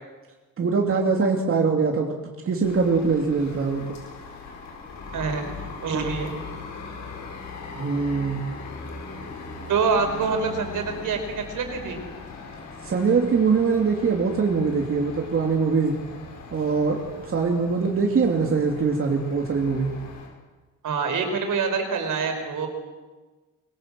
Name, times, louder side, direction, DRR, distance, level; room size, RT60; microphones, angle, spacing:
voice 1, 0.6-4.0 5.9-6.1 7.8-8.4 12.8-16.0 16.5-17.0 17.3-19.9, right 5 dB, 45° right, 1 dB, 2.9 m, -23 dB
sound 1, 2.6-20.3, left 4 dB, 60° left, 7.3 m, -40 dB
voice 2, 5.1-6.4 9.7-12.0 20.8-22.7, right 5 dB, 70° right, 5 dB, 5.2 m, -26 dB
24.5 x 23.0 x 7.7 m, 1.3 s
wide cardioid pair, 160°, 32 cm